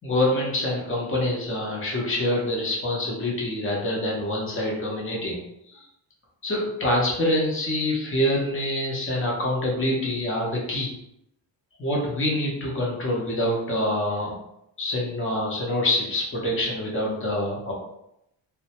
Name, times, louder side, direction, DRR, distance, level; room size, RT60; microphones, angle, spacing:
voice 1, 0.0-5.4 5.7-5.9 6.4-10.9 11.8-14.3 14.8-17.7, left 1 dB, 30° left, -3 dB, 0.7 m, -26 dB
2.1 x 2.1 x 2.8 m, 0.80 s
wide cardioid pair, 120°, 44 cm